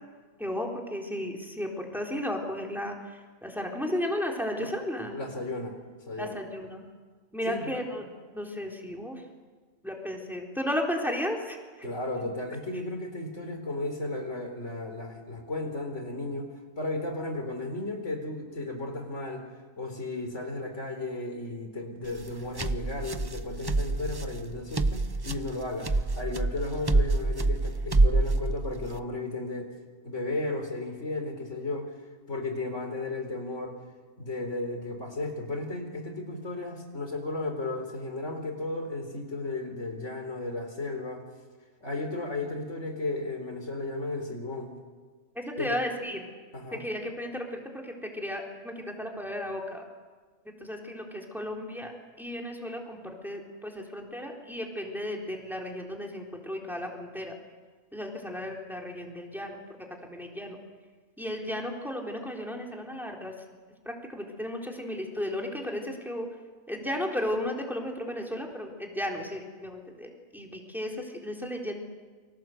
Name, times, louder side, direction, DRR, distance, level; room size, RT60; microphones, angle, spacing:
voice 1, 0.4-5.2 6.2-6.8 7.3-8.1 8.3-9.2 9.8-11.9 45.4-46.3 46.8-49.8 50.5-57.3 57.9-59.6 60.1-60.6 61.2-63.3 63.9-66.3 66.7-71.8, left 1 dB, ahead, 0 dB, 3.9 m, -34 dB
voice 2, 5.1-5.8 6.1-6.3 7.5-7.8 11.8-16.5 16.8-19.4 19.8-25.9 26.1-29.7 30.0-31.9 32.3-33.8 34.2-41.2 41.8-44.7 45.6-45.8 46.5-46.8, left 2 dB, 80° left, 5 dB, 4.4 m, -34 dB
sound 1, 22.0-29.0, right 2 dB, 20° right, 0.8 m, -27 dB
29.5 x 25.0 x 8.0 m, 1.4 s
omnidirectional pair, 1.2 m